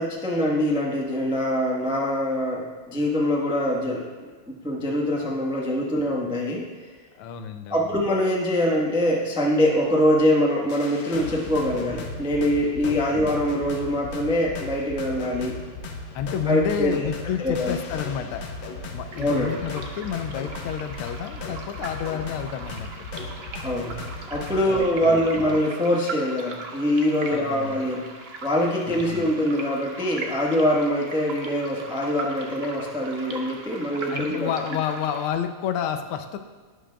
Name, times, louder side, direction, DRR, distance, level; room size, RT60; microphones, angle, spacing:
voice 1, 0.0-4.1 4.5-6.7 7.7-15.5 16.5-17.0 17.4-17.8 19.2-19.5 23.6-23.9 24.3-28.1 28.4-34.5, equal, 10° right, -2 dB, 0.3 m, -24 dB
voice 2, 7.1-7.8 12.8-13.2 16.1-18.5 18.9-22.9 24.7-25.2 27.3-27.8 28.9-29.3 34.1-36.4, left 9 dB, 80° left, 8 dB, 1.5 m, -30 dB
sound 1, 10.7-24.8, left 3 dB, 65° left, 1.5 m, -36 dB
sound 2, 19.1-35.3, right 3 dB, 90° right, 0.5 m, -39 dB
11.0 x 11.0 x 2.3 m, 1.4 s
omnidirectional pair, 2.4 m